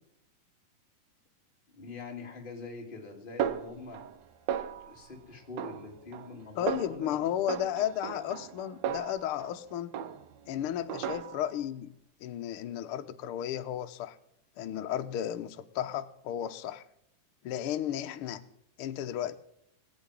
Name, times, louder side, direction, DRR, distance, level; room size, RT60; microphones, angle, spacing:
voice 1, 1.7-4.0 4.8-7.3 11.0-11.1, left 3 dB, 15° left, 1 dB, 2.5 m, -44 dB
Snare drum, 3.4-4.2 4.5-5.1 5.6-6.4 6.7-7.1 7.5-9.6 9.9-10.5 10.9-11.6, right 9 dB, 70° right, 1.7 m, -36 dB
voice 2, 6.5-9.9 10.5-11.9 12.2-14.2 14.6-16.8 17.4-18.4 18.8-19.4, left 11 dB, 90° left, 8 dB, 1.2 m, -33 dB
18.5 x 6.4 x 9.8 m, 0.77 s
omnidirectional pair, 3.8 m